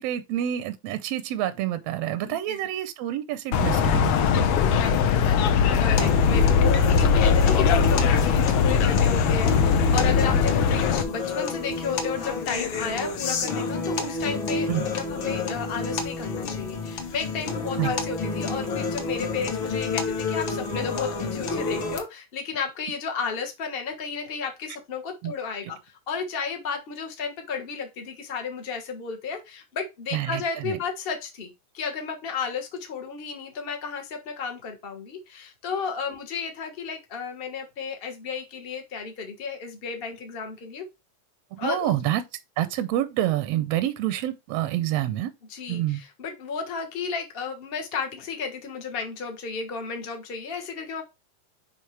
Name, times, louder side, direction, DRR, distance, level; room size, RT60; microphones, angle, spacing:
voice 1, 0.0-4.1 14.7-14.8 17.8-17.9 25.2-25.3 30.1-30.8 41.6-42.2 42.6-45.3 45.7-46.0, right 12 dB, 80° right, 1.4 m, -27 dB
voice 2, 2.0-2.6 3.8-40.9 41.6-41.9 45.5-51.0, left 5 dB, 90° left, 0.5 m, -33 dB
sound 1, 3.5-11.0, left 6 dB, 75° left, 1.4 m, -20 dB
sound 2, 6.0-22.0, left 4 dB, 55° left, 1.5 m, -30 dB
9.8 x 3.5 x 3.2 m
omnidirectional pair, 3.4 m